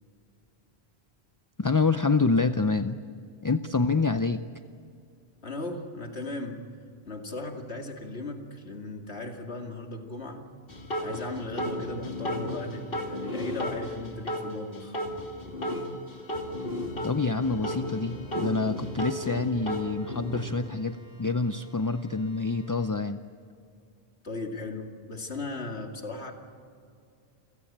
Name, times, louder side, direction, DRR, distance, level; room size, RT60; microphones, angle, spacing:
voice 1, 1.6-3.0 3.4-4.4 17.0-23.2, left 4 dB, 25° left, 10 dB, 0.4 m, -27 dB
voice 2, 5.4-6.6 7.0-10.5 11.0-15.0 24.2-26.3, left 2 dB, 90° left, 3 dB, 2.6 m, -37 dB
sound 1, 10.7-14.5 14.7-17.2 17.4-20.5, left 1 dB, 60° left, 2.7 m, -33 dB
Organ, 16.1-22.9, right 1 dB, 5° right, 6.5 m, -53 dB
29.5 x 16.5 x 8.7 m, 2.4 s
omnidirectional pair, 1.1 m